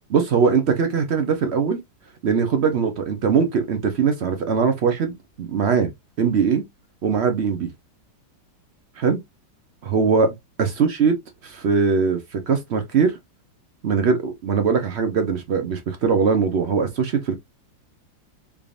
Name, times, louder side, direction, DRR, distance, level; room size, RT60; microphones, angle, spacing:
voice 1, 0.1-1.8 2.2-5.9 6.2-6.6 7.0-7.7 9.0-9.2 9.8-10.3 10.6-11.1 11.4-13.2 13.8-17.4, right 5 dB, 65° right, 0.6 m, -21 dB
3.7 x 3.5 x 2.4 m
omnidirectional pair, 2.1 m